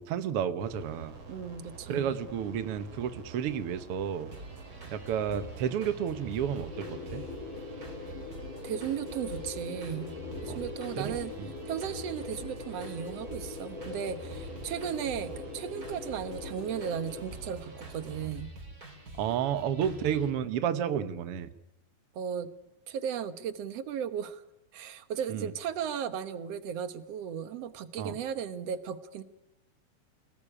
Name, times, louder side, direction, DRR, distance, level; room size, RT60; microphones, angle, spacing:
voice 1, 0.0-1.2 1.9-4.3 4.9-7.2 10.5-10.6 11.0-11.5 19.1-21.5 25.3-25.5 28.0-28.1, right 8 dB, 80° right, 12 dB, 1.3 m, -31 dB
sound 1, 0.6-18.3, right 4 dB, 45° right, 4.4 m, -48 dB
voice 2, 1.3-2.1 8.6-10.1 10.4-11.3 11.7-18.5 22.1-22.5 22.9-24.4 24.7-29.2, right 8 dB, 60° right, 12 dB, 1.8 m, -36 dB
sound 2, 4.3-20.3, right 1 dB, 25° right, 4.5 m, -47 dB
sound 3, 6.7-17.2, left 5 dB, 50° left, 3.0 m, -42 dB
28.0 x 19.0 x 10.0 m, 0.88 s
omnidirectional pair, 4.2 m